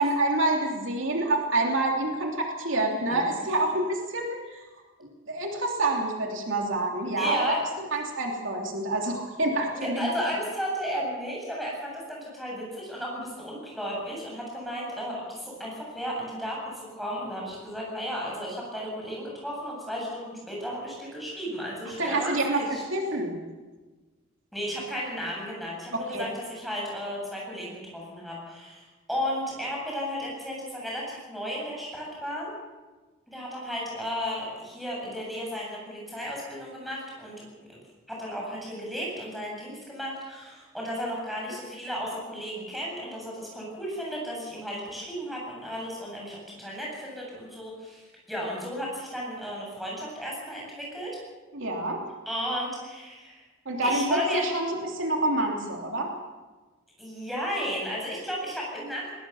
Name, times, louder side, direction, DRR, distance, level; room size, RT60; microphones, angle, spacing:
voice 1, 0.0-4.7 5.0-10.1 22.0-22.6 22.9-23.4 25.9-26.3 51.5-52.0 53.6-56.1, right 2 dB, 65° right, 1 dB, 3.0 m, -27 dB
voice 2, 7.2-7.6 9.7-22.8 24.5-32.5 33.3-37.8 38.1-48.0 48.3-51.1 52.3-53.4 53.8-54.5 57.0-59.1, equal, ahead, -3 dB, 7.9 m, -34 dB
21.0 x 20.0 x 7.1 m, 1.3 s
head